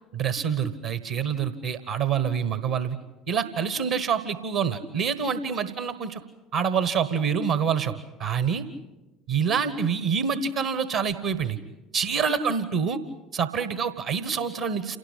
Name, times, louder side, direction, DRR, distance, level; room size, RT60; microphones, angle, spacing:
voice 1, 0.1-3.0 3.3-6.2 6.5-8.6 9.3-11.6 11.9-13.0 13.3-15.0, right 6 dB, 65° right, 12 dB, 1.3 m, -26 dB
28.5 x 18.5 x 8.4 m, 1.1 s
figure-of-eight pair, 60°, 0 cm